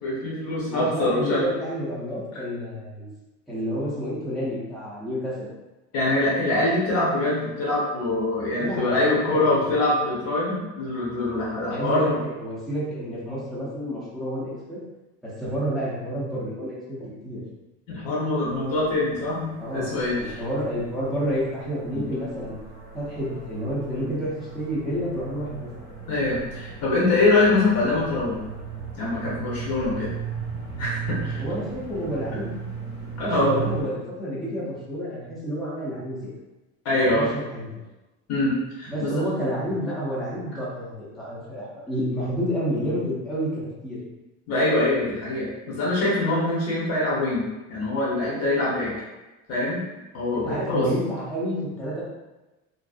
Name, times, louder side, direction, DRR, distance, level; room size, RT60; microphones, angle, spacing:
voice 1, 0.0-1.5 5.9-12.2 17.9-20.4 21.9-22.0 26.1-28.4 29.0-30.1 30.8-31.4 33.2-33.5 36.8-37.3 38.3-39.1 44.5-48.9 49.5-49.8 50.1-50.9, left 2 dB, 45° left, -6 dB, 0.8 m, -24 dB
voice 2, 0.7-3.1 3.5-5.5 8.6-8.9 9.2-9.6 11.6-12.1 12.4-14.8 15.2-17.0 17.2-17.4 19.6-19.9 20.2-22.6 22.9-25.7 31.3-32.5 33.1-36.3 36.9-37.7 38.9-44.0 50.3-52.0, equal, ahead, -10 dB, 0.6 m, -29 dB
sound 1, 18.5-33.8, right 6 dB, 65° right, 1.3 m, -37 dB
2.6 x 2.4 x 2.3 m, 1.1 s
cardioid pair, 170°, 33 cm